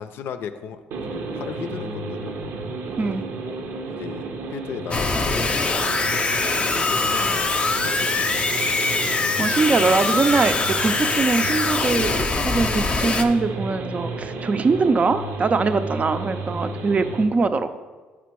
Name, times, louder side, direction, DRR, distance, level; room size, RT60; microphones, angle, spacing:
voice 1, 0.0-2.4 3.5-3.6 3.9-7.5 7.8-8.7 15.6-15.9 16.4-16.6, left 7 dB, 70° left, 9 dB, 0.4 m, -37 dB
sound 1, 0.9-17.2, right 3 dB, 75° right, 0.8 m, -32 dB
sound 2, 4.9-13.2, left 3 dB, 30° left, 0.6 m, -23 dB
voice 2, 9.4-17.8, right 4 dB, 35° right, 10 dB, 0.5 m, -22 dB
6.0 x 5.0 x 4.6 m, 1.3 s
supercardioid pair, 75°, 4 cm